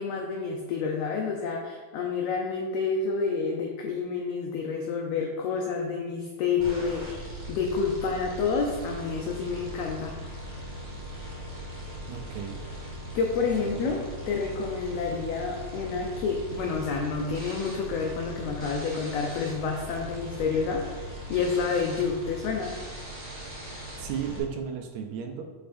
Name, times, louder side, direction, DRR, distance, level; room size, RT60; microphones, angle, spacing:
voice 1, 0.0-10.3 13.1-22.7, left 5 dB, 75° left, 1 dB, 1.5 m, -29 dB
sound 1, 6.6-24.4, equal, 20° right, 0.7 m, -39 dB
voice 2, 12.1-12.6 13.6-14.0 24.0-25.4, right 8 dB, 80° right, 4 dB, 1.8 m, -34 dB
6.7 x 5.7 x 2.6 m, 1.4 s
omnidirectional pair, 3.4 m